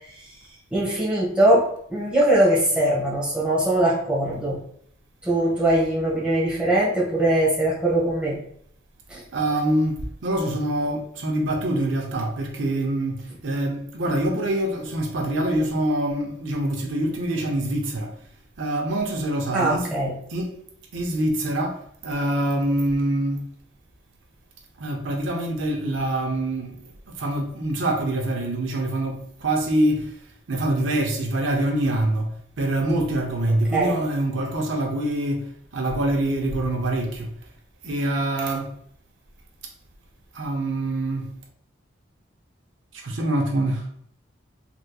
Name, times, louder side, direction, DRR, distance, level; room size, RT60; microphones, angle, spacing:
voice 1, 0.7-4.6 5.2-8.4 9.1-9.2 19.5-20.2 33.7-34.0, right 1 dB, 5° right, 1.0 m, -21 dB
voice 2, 9.3-13.1 13.4-18.1 18.6-20.0 20.3-20.5 20.9-21.8 22.0-23.5 24.8-26.7 27.2-29.2 29.4-30.0 30.5-32.3 32.6-35.4 35.7-37.3 37.8-38.7 40.4-41.2 43.0-43.8, right 1 dB, 80° right, 0.6 m, -24 dB
3.3 x 2.9 x 2.3 m
head